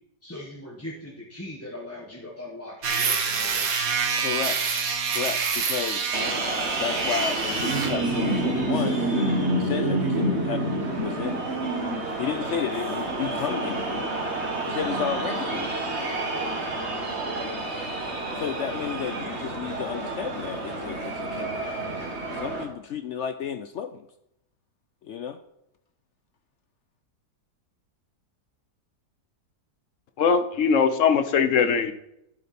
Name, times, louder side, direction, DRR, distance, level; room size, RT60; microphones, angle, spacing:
voice 1, 0.2-3.7, left 1 dB, 10° left, -5 dB, 1.3 m, -40 dB
sound 1, 2.8-8.0, right 5 dB, 60° right, 1.5 m, -27 dB
voice 2, 4.1-4.6 5.1-6.1 6.8-9.0 9.5-11.5 12.2-14.1 14.7-15.8 18.4-21.6 22.2-24.1 25.0-25.4, left 8 dB, 75° left, 10 dB, 0.6 m, -32 dB
sound 2, 6.1-22.6, right 1 dB, 40° right, 2.0 m, -28 dB
voice 3, 30.2-31.9, left 6 dB, 55° left, 10 dB, 1.0 m, -21 dB
12.0 x 7.1 x 4.3 m, 0.82 s
omnidirectional pair, 1.8 m